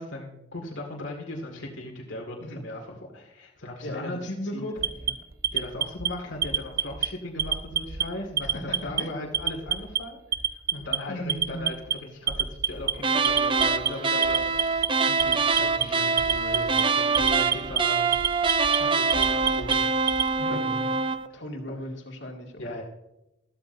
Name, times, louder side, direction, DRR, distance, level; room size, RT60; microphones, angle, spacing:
voice 1, 0.0-4.7 5.5-10.2 10.5-11.7 12.1-14.6 15.1-19.8 20.5-20.8 21.7-21.8 22.6-22.8, left 1 dB, 85° left, -1 dB, 2.0 m, -37 dB
voice 2, 3.8-5.1 8.4-9.2 11.0-11.7 20.4-21.0 21.3-22.8, equal, 65° left, 2 dB, 2.2 m, -38 dB
Alarm, 4.8-6.1 6.4-7.1 7.4-8.0 8.4-9.0 9.3-10.0 10.3-11.0 11.3-11.9 12.3-12.9 13.2-13.9 14.2-14.9 15.2-15.8 16.2-16.8 17.1-17.8 18.1-18.8 19.1-20.3, right 8 dB, 50° right, 0.8 m, -26 dB
sound 1, 13.0-21.3, right 4 dB, 25° right, 0.5 m, -25 dB
13.5 x 13.5 x 2.6 m, 0.90 s
head